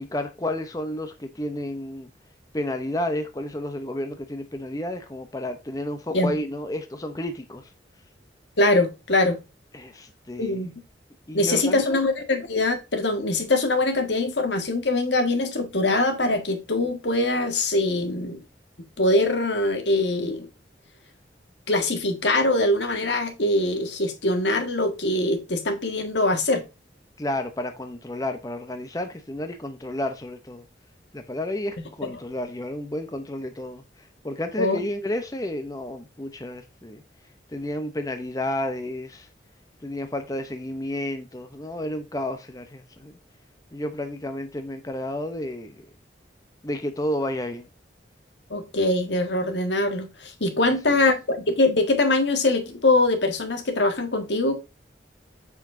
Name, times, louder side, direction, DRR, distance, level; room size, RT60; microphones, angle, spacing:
voice 1, 0.0-2.1 2.5-7.7 9.7-10.6 11.3-12.0 27.2-30.6 31.1-37.0 37.5-39.3 39.8-43.2 43.7-45.9 46.6-47.7 50.6-51.0, left 1 dB, 20° left, 0.7 m, -31 dB
voice 2, 8.6-9.4 10.4-10.7 11.3-18.4 19.0-20.5 21.7-26.6 34.6-34.8 48.5-54.6, left 2 dB, 75° left, 1.7 m, -23 dB
7.0 x 6.1 x 2.6 m
head